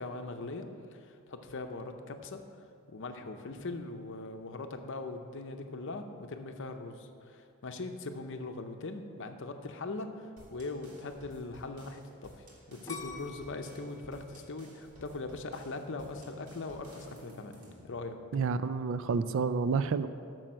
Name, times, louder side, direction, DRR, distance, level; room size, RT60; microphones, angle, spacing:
voice 1, 0.0-2.4 2.9-17.6 17.8-18.2, left 3 dB, 55° left, 6 dB, 0.7 m, -41 dB
sound 1, 10.4-17.9, equal, 85° right, 1.9 m, -55 dB
sound 2, 12.9-15.8 16.3-16.8, left 4 dB, 15° left, 1.2 m, -47 dB
voice 2, 18.3-20.1, right 5 dB, 60° right, 13 dB, 0.3 m, -29 dB
8.9 x 6.3 x 6.2 m, 2.4 s
head